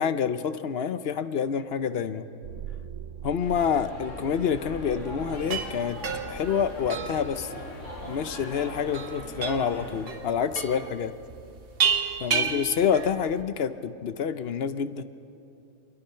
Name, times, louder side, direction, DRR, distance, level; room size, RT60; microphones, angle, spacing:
voice 1, 0.0-2.3 3.2-6.0 6.3-7.5 8.1-11.1 12.2-15.0, left 7 dB, 60° left, 11 dB, 0.9 m, -27 dB
sound 1, 2.4-7.4, right 9 dB, 70° right, 1.0 m, -43 dB
sound 2, 3.4-10.0, equal, 75° left, 5.5 m, -40 dB
sound 3, 5.3-13.4, right 6 dB, 50° right, 1.2 m, -32 dB
24.5 x 22.0 x 5.6 m, 2.7 s
omnidirectional pair, 1.3 m